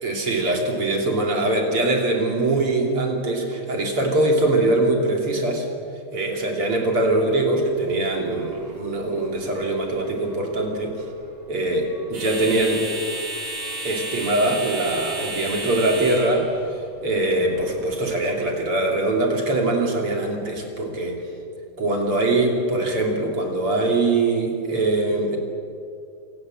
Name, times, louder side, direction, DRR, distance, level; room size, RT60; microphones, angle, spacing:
voice 1, 0.0-5.7 6.1-11.0 11.5-12.9 13.8-16.5 17.0-21.2 21.8-25.4, right 2 dB, 40° right, 1 dB, 3.6 m, -22 dB
sound 1, 7.0-18.3, right 2 dB, 60° right, 7.2 m, -35 dB
27.5 x 18.0 x 7.8 m, 2.5 s
omnidirectional pair, 4.1 m